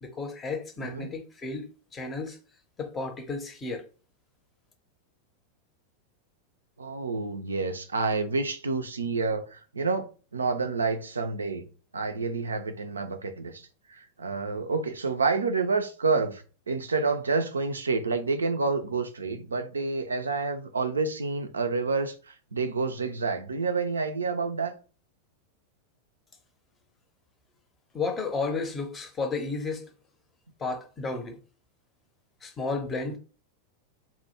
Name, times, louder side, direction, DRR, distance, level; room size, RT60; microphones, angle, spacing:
voice 1, 0.0-2.4 2.8-3.8 27.9-29.9 30.6-31.4 32.4-33.2, left 4 dB, 20° left, 0.6 m, -32 dB
voice 2, 6.8-11.7 11.9-24.8, right 4 dB, 75° right, 0.3 m, -29 dB
2.2 x 2.1 x 2.9 m
figure-of-eight pair, 90°, 0 cm